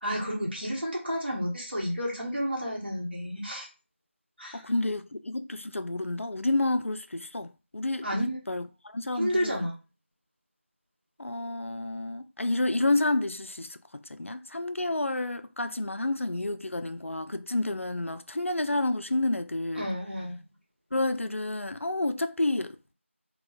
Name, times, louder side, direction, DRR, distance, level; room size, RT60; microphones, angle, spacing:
voice 1, 0.0-3.7 4.4-4.6 8.0-8.4 9.2-9.7 19.8-20.4, equal, 50° right, 1.3 m, -31 dB
voice 2, 4.5-9.6 11.2-19.9 20.9-22.9, left 2 dB, 75° left, 0.4 m, -30 dB
3.5 x 2.3 x 2.6 m
figure-of-eight pair, 180°, 7 cm